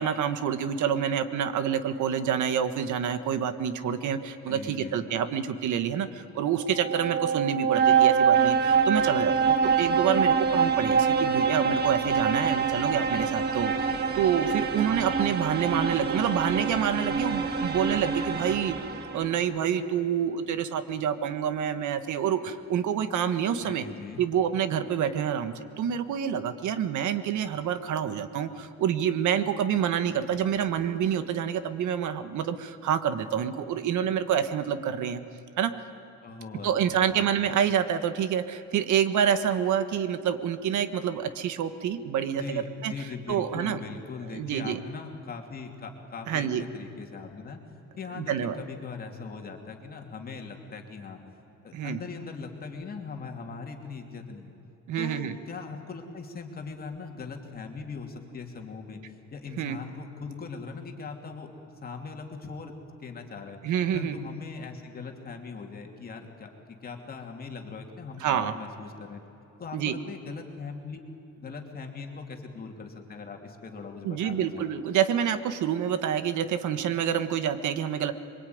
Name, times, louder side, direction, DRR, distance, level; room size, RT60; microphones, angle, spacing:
voice 1, 0.0-13.9 14.1-18.7 19.1-23.8 24.2-35.2 35.6-35.7 36.6-42.9 43.3-43.8 44.3-44.8 46.3-46.6 48.1-48.6 51.7-52.0 54.9-55.3 59.6-59.8 63.6-64.2 68.2-68.5 69.7-69.9 74.0-78.1, right 9 dB, 75° right, 11 dB, 1.5 m, -27 dB
voice 2, 4.5-5.0 23.6-24.2 36.2-37.2 42.4-47.6 48.0-51.2 51.6-54.5 55.0-62.7 63.0-63.6 63.9-69.2 69.6-71.0 71.4-74.7, left 4 dB, 30° left, 3 dB, 2.8 m, -40 dB
sound 1, 6.6-19.4, right 6 dB, 35° right, 1.9 m, -25 dB
26.5 x 23.5 x 9.5 m, 2.9 s
cardioid pair, 180°, 30 cm